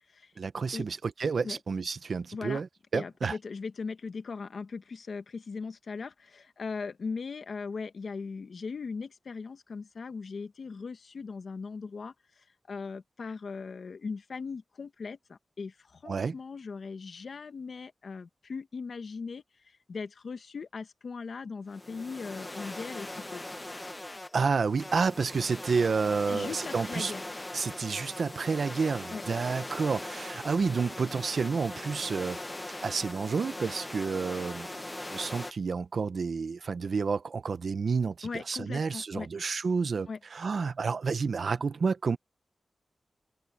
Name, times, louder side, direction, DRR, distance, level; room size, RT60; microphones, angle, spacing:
voice 1, 0.4-2.7 2.9-3.4 16.1-16.3 24.3-27.1 27.5-32.4 32.8-34.8 35.1-42.2, right 5 dB, 65° right, 1.0 m, -30 dB
voice 2, 2.3-2.6 2.9-12.1 12.7-19.4 19.9-23.4 26.3-27.2 29.1-29.2 38.2-39.3 40.1-40.2, left 4 dB, 65° left, 1.4 m, -39 dB
sound 1, 21.7-35.5, left 1 dB, 15° left, 1.1 m, -40 dB
wide cardioid pair, 110°, 0 cm